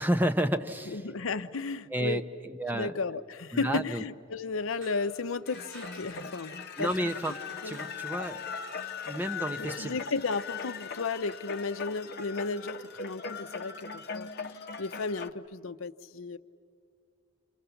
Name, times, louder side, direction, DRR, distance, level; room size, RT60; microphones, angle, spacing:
voice 1, 0.0-1.0 1.9-2.9 3.5-4.0 6.8-7.3 7.6-8.4 9.1-10.0, right 1 dB, 10° right, 6 dB, 0.8 m, -30 dB
voice 2, 0.9-2.2 2.7-7.1 7.6-7.8 9.6-16.4, left 4 dB, 75° left, 12 dB, 0.7 m, -34 dB
sound 1, 4.7-8.5, right 2 dB, 75° right, 4.4 m, -53 dB
sound 2, 5.5-15.3, left 5 dB, 50° left, 0.9 m, -40 dB
29.0 x 28.0 x 7.0 m, 2.3 s
head